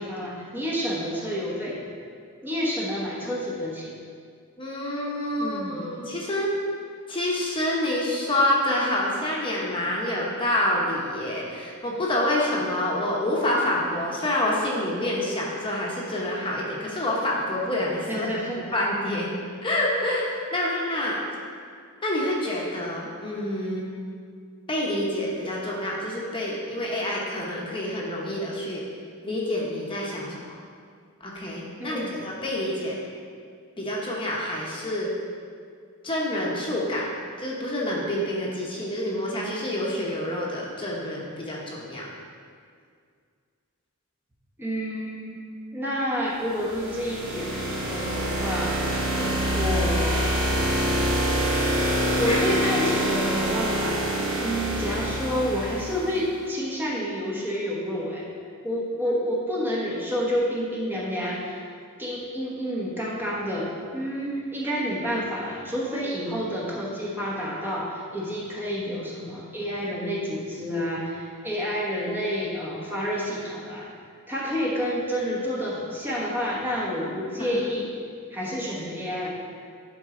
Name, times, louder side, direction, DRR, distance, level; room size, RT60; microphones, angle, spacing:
voice 1, 0.0-1.8 2.4-3.9 5.4-6.0 11.5-11.6 18.1-18.8 31.8-32.2 44.6-45.4 45.7-48.8 49.5-50.4 52.2-54.0 54.4-58.3 58.6-61.7 62.0-73.9 74.3-77.9 78.3-79.3, equal, 10° right, -5 dB, 1.0 m, -29 dB
voice 2, 4.6-6.5 7.1-18.3 18.7-19.3 19.6-21.2 22.0-23.9 24.7-28.8 29.2-30.4 31.2-32.9 33.8-35.1 36.0-37.1 37.4-42.1 49.1-49.4 52.2-52.4 54.3-54.6 59.1-59.2 77.4-77.6, left 1 dB, 25° left, -4 dB, 1.1 m, -27 dB
sound 1, 46.4-56.2, right 1 dB, 70° right, 2.1 m, -26 dB
11.0 x 4.7 x 3.8 m, 2.1 s
head